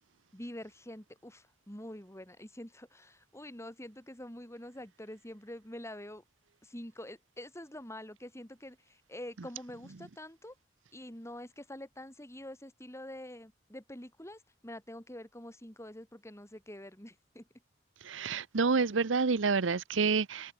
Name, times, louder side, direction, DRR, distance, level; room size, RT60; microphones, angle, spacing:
voice 1, 0.3-6.2 6.6-10.5 10.9-17.5, left 1 dB, 15° left, 6.2 m, -46 dB
voice 2, 18.1-20.5, right 4 dB, 80° right, 0.8 m, -28 dB
head